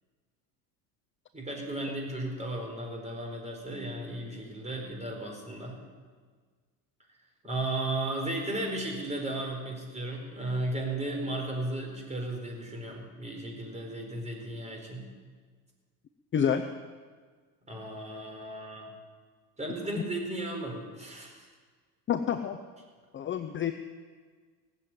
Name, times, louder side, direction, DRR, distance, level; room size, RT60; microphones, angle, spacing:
voice 1, 1.3-5.8 7.4-15.1 17.7-18.9 19.6-21.5, right 1 dB, 15° right, 1 dB, 4.4 m, -35 dB
voice 2, 22.1-22.6 23.1-23.7, left 8 dB, 25° left, 9 dB, 0.7 m, -28 dB
18.0 x 7.9 x 9.0 m, 1.5 s
supercardioid pair, 110°, 47 cm